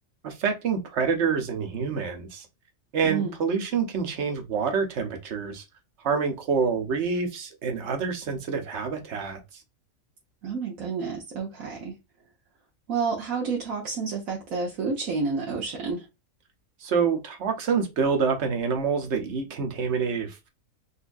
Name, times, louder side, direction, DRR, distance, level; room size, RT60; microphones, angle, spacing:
voice 1, 0.2-2.5 2.9-5.6 6.0-9.4 16.8-20.5, right 5 dB, 60° right, 1.1 m, -27 dB
voice 2, 10.4-12.0 12.9-16.1, right 5 dB, 90° right, 1.3 m, -29 dB
4.0 x 2.7 x 2.5 m
omnidirectional pair, 1.4 m